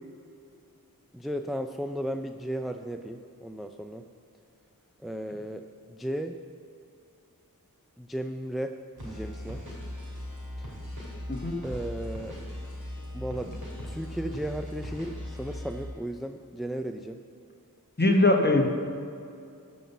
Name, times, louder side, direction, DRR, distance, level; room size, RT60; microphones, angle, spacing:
voice 1, 1.1-4.0 5.0-5.6 5.9-6.4 8.0-8.7 9.0-9.6 10.6-10.7 11.6-12.4 13.1-13.5 13.8-17.2, right 1 dB, ahead, 6 dB, 0.4 m, -35 dB
sound 1, 9.0-15.9, left 1 dB, 85° right, 2.8 m, -39 dB
voice 2, 18.0-18.7, left 2 dB, 30° left, 2 dB, 1.3 m, -21 dB
13.5 x 5.5 x 7.1 m, 2.5 s
wide cardioid pair, 45°, 36 cm